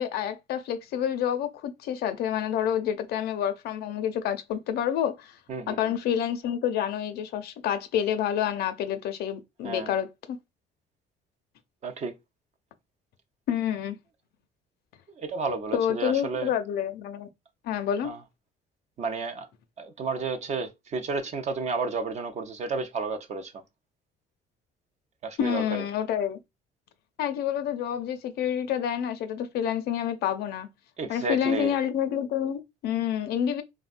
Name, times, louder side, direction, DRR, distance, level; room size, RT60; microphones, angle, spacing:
voice 1, 0.0-5.3 5.7-10.4 13.5-14.0 15.7-17.3 17.6-18.1 25.4-26.4 27.2-30.7 31.1-33.6, left 9 dB, 70° left, 0.5 m, -28 dB
voice 2, 5.5-5.9 9.6-9.9 11.8-12.1 15.2-16.5 18.0-18.2 19.0-19.5 19.8-23.5 25.2-25.8 31.0-31.8, right 4 dB, 40° right, 0.6 m, -32 dB
3.5 x 2.1 x 2.5 m
cardioid pair, 110°, 17 cm